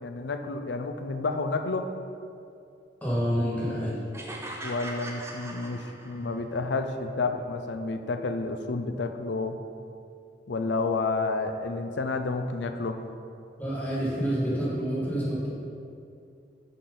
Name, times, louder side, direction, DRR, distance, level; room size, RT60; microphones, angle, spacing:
voice 1, 0.0-1.9 4.6-9.6 10.5-13.0, left 3 dB, 65° left, 7 dB, 0.5 m, -30 dB
voice 2, 3.0-4.0 13.6-15.5, equal, 10° left, -8 dB, 1.7 m, -28 dB
sound 1, 4.1-6.5, right 1 dB, 15° right, 0.6 m, -40 dB
10.5 x 4.3 x 3.8 m, 2.5 s
head